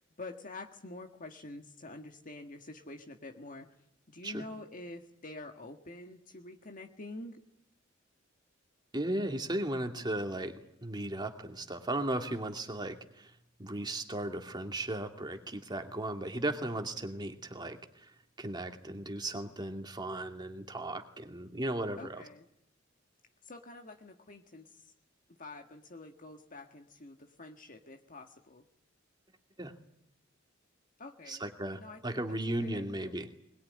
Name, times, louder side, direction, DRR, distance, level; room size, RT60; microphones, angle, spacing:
voice 1, 0.2-3.7 4.1-7.4 22.0-22.5 23.4-24.8 25.4-28.6 31.0-31.5 31.8-33.2, left 2 dB, 40° left, 4 dB, 1.7 m, -47 dB
voice 2, 8.9-13.3 13.6-17.8 18.4-22.2 29.6-29.7 31.3-33.3, right 1 dB, 20° right, 5 dB, 2.3 m, -36 dB
21.5 x 21.0 x 9.8 m, 0.73 s
head